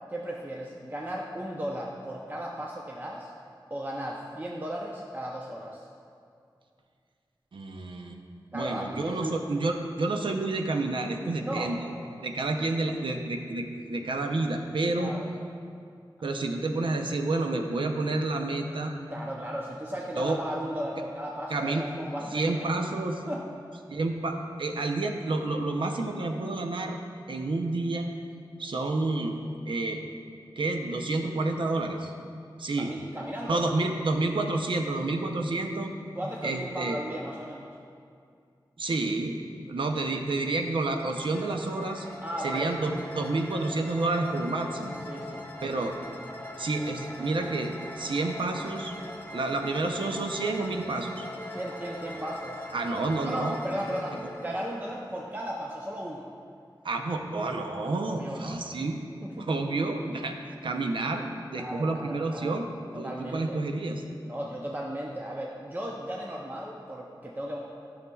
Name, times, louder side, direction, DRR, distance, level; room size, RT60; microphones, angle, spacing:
voice 1, 0.1-3.3 3.7-5.9 8.5-9.4 11.4-11.7 15.0-15.3 19.1-22.7 23.3-23.4 32.8-33.6 36.1-37.7 42.2-42.7 44.6-44.7 45.1-45.5 51.5-52.6 53.2-56.3 58.0-58.6 59.2-59.5 61.6-62.6 62.9-63.6 64.2-67.6, equal, 25° right, -2 dB, 0.6 m, -36 dB
voice 2, 7.5-8.2 8.5-11.9 12.2-15.1 16.2-19.0 20.1-20.4 21.5-21.9 22.3-23.2 23.9-27.0 27.3-28.1 28.6-29.4 29.7-30.0 30.6-32.1 32.6-32.9 33.4-35.9 36.4-37.0 38.8-39.4 39.7-42.1 42.4-45.0 45.6-45.9 46.5-48.9 49.3-51.3 52.7-53.6 56.8-59.0 59.4-60.4 60.6-62.7 63.0-64.0, right 2 dB, 80° right, 3 dB, 0.6 m, -29 dB
sound 1, 41.0-55.8, left 1 dB, 25° left, 0.9 m, -42 dB
11.0 x 6.5 x 2.3 m, 2.3 s
wide cardioid pair, 55°, 8 cm